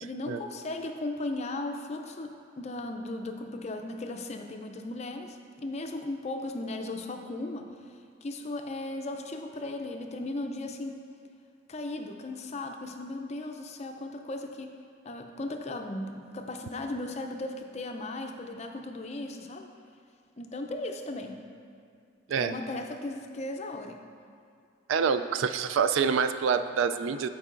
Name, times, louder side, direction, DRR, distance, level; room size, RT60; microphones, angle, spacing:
voice 1, 0.0-7.7 8.2-11.0 11.7-14.7 15.0-19.7 20.4-21.4 22.4-24.0, left 2 dB, 35° left, 4 dB, 0.5 m, -36 dB
voice 2, 24.9-27.3, right 6 dB, 75° right, 10 dB, 0.3 m, -26 dB
13.5 x 4.7 x 2.5 m, 2.4 s
head